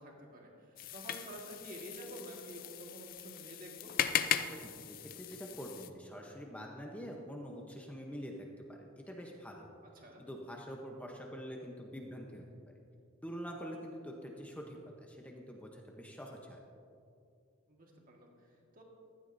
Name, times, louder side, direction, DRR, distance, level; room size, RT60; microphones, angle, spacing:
voice 1, 0.0-3.9 9.9-10.2 17.7-18.8, right 1 dB, 40° right, -1 dB, 1.6 m, -50 dB
sound 1, 0.8-5.9, left 9 dB, 40° left, 0.4 m, -38 dB
voice 2, 4.5-9.7 10.2-12.5 13.2-16.6, equal, 5° left, 0 dB, 0.8 m, -45 dB
15.0 x 12.0 x 2.6 m, 2.5 s
head